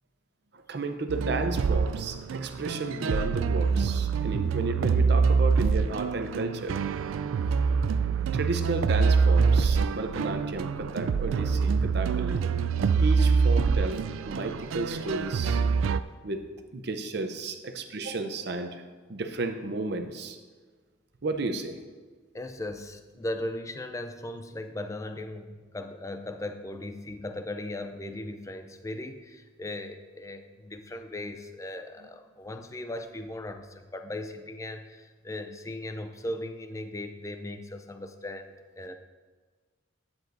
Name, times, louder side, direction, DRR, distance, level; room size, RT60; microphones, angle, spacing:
voice 1, 0.5-6.8 8.3-12.4 13.0-15.6 16.2-16.4 16.7-18.8 19.1-20.4 21.2-21.8, right 2 dB, 55° right, 7 dB, 0.7 m, -33 dB
sound 1, 1.1-16.0, right 5 dB, 85° right, 0.3 m, -25 dB
voice 2, 22.3-38.9, left 1 dB, 15° left, 8 dB, 0.4 m, -38 dB
10.5 x 9.6 x 2.6 m, 1.4 s
head